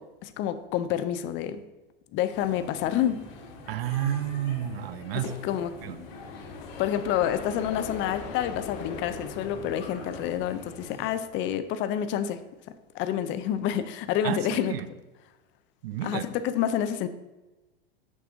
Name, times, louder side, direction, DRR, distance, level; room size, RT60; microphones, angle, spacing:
voice 1, 0.0-1.6 2.1-3.2 5.4-5.7 6.8-12.4 12.9-14.7 16.0-17.1, left 10 dB, 40° left, 11 dB, 0.5 m, -28 dB
sound 1, 2.3-11.1, left 2 dB, 75° left, 1.9 m, -44 dB
voice 2, 3.7-5.4 5.8-6.0 14.2-14.9 15.8-16.2, right 11 dB, 75° right, 14 dB, 0.6 m, -30 dB
sound 2, 6.0-11.8, left 6 dB, 60° left, 0.9 m, -42 dB
6.1 x 5.4 x 3.8 m, 1.1 s
hypercardioid pair, 110°, 30 cm